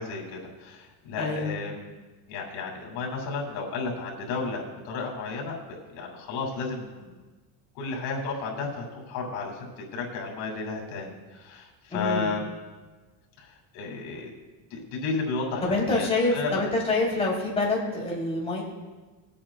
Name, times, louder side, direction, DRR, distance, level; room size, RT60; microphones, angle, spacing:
voice 1, 0.0-2.0 2.3-7.2 7.7-12.5 13.4-14.3 14.7-16.5, left 4 dB, 80° left, -1 dB, 2.8 m, -33 dB
voice 2, 1.2-1.5 11.9-12.3 15.6-18.6, left 2 dB, 15° left, -5 dB, 3.2 m, -26 dB
22.0 x 8.7 x 2.4 m, 1.3 s
cardioid pair, 145°, 44 cm